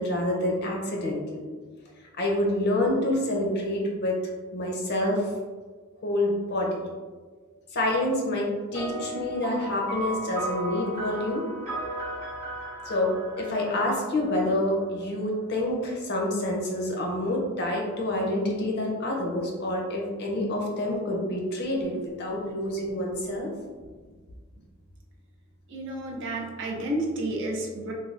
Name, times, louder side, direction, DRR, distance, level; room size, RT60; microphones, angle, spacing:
voice 1, 0.0-1.4 2.1-4.2 4.5-5.3 6.0-6.9 7.7-11.5 12.8-23.5, left 1 dB, 50° left, -1 dB, 0.5 m, -27 dB
sound 1, 8.7-14.5, right 1 dB, 30° right, 0.9 m, -35 dB
voice 2, 25.7-27.9, right 1 dB, 55° right, -1 dB, 0.5 m, -31 dB
3.2 x 2.2 x 2.4 m, 1.5 s
head